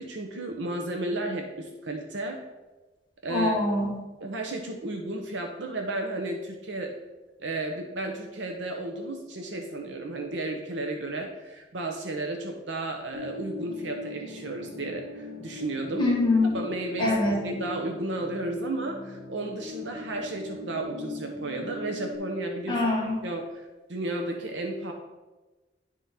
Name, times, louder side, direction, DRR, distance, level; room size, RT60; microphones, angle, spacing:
voice 1, 0.0-2.4 3.2-3.5 4.2-6.9 7.4-16.1 16.5-22.8 23.2-24.9, right 2 dB, 85° right, 3 dB, 0.8 m, -33 dB
voice 2, 3.3-3.9 16.0-16.6 17.0-17.5 22.7-23.2, left 2 dB, 25° left, -4 dB, 1.7 m, -24 dB
sound 1, 13.1-22.1, left 2 dB, 60° left, 1.5 m, -40 dB
10.5 x 3.7 x 4.2 m, 1.1 s
head